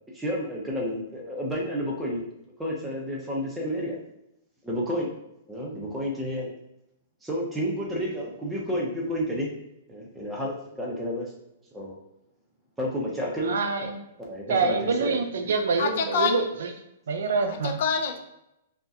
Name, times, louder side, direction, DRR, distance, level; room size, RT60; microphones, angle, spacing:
voice 1, 0.1-2.2 2.6-4.0 4.6-5.1 5.5-6.5 7.2-9.5 9.9-11.3 11.7-12.0 12.8-13.5 13.8-13.9 14.2-15.1 15.8-15.9 17.4-17.5, equal, 5° right, -4 dB, 0.6 m, -30 dB
voice 2, 13.5-14.0 14.5-16.7 17.1-17.8, right 4 dB, 80° right, 5 dB, 0.5 m, -26 dB
voice 3, 15.8-16.4 17.5-18.2, left 5 dB, 45° left, 5 dB, 0.4 m, -26 dB
2.6 x 2.1 x 3.5 m, 0.85 s
hypercardioid pair, 170°, 0 cm